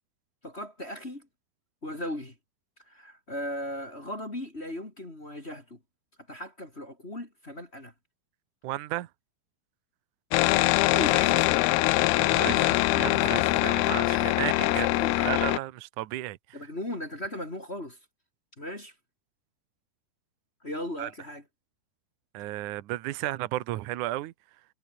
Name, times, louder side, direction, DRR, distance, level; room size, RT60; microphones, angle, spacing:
voice 1, 0.4-1.3 1.8-2.3 2.9-5.8 6.3-7.9 10.9-11.5 12.4-15.3 16.5-18.0 18.6-18.9 20.6-21.4, left 1 dB, 20° left, 2.7 m, -37 dB
voice 2, 8.6-9.1 12.2-14.9 15.2-16.4 21.0-21.1 22.3-24.3, right 16 dB, 70° right, 2.1 m, -33 dB
sound 1, 10.3-15.6, left 20 dB, 85° left, 2.6 m, -23 dB
omnidirectional pair, 4.4 m